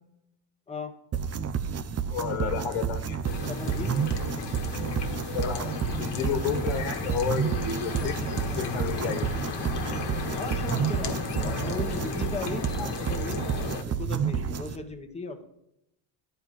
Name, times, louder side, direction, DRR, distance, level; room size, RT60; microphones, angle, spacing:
sound 1, 1.1-14.8, right 7 dB, 30° right, 0.6 m, -30 dB
voice 1, 2.1-3.2 5.3-9.3 12.8-12.9, left 7 dB, 85° left, 7 dB, 1.7 m, -31 dB
sound 2, 3.2-13.8, left 4 dB, 55° left, 1.5 m, -34 dB
voice 2, 3.5-4.6 10.3-13.4 13.8-15.4, left 3 dB, 15° left, 4 dB, 1.2 m, -37 dB
11.0 x 4.6 x 7.6 m, 0.83 s
cardioid pair, 105°, 49 cm